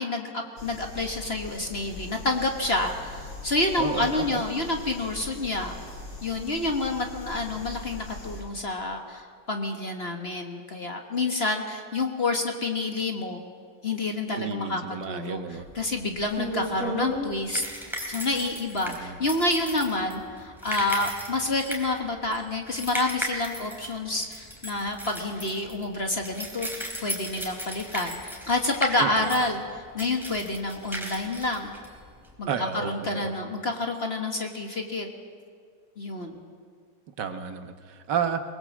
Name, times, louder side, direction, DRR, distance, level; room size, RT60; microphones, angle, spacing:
voice 1, 0.0-5.7 6.2-13.4 13.8-17.6 18.1-31.8 32.4-35.1 36.0-36.4, left 2 dB, 35° left, 3 dB, 1.5 m, -28 dB
sound 1, 0.6-8.4, left 2 dB, 80° left, 4.6 m, -41 dB
voice 2, 3.8-4.4 14.3-15.7 18.8-19.2 29.0-29.1 32.5-33.3 37.2-38.4, right 7 dB, 65° right, 8 dB, 1.8 m, -31 dB
sound 2, 15.6-32.3, equal, ahead, 3.4 m, -36 dB
23.0 x 20.0 x 7.3 m, 2.1 s
omnidirectional pair, 2.0 m